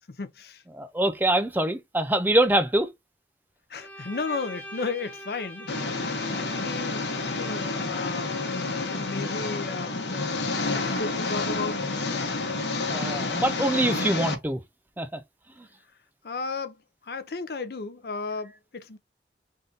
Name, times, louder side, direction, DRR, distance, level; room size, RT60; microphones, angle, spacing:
voice 1, 0.2-0.6 3.7-11.9 16.2-19.0, left 4 dB, 60° left, 0.6 m, -35 dB
voice 2, 0.7-2.9 12.9-14.6 15.0-15.2 15.6-15.7, right 1 dB, 10° right, 0.4 m, -24 dB
Bowed string instrument, 3.8-9.6, left 1 dB, 10° left, 0.8 m, -44 dB
Engine, 5.7-14.3, left 3 dB, 75° left, 0.9 m, -29 dB
3.6 x 2.6 x 3.8 m
head